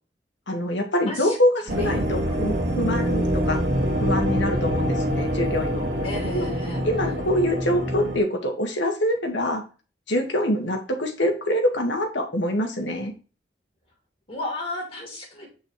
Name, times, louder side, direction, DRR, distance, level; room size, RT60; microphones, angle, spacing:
voice 1, 0.5-3.6 4.0-5.9 6.3-6.5 6.8-9.6 10.1-13.1, left 1 dB, 85° left, 3 dB, 1.8 m, -25 dB
voice 2, 1.0-1.4 1.7-1.9 6.0-6.8 14.3-15.5, left 2 dB, 35° left, -2 dB, 3.6 m, -33 dB
sound 1, 1.7-8.2, equal, 75° right, 2.0 m, -25 dB
8.4 x 6.5 x 3.2 m, 0.34 s
head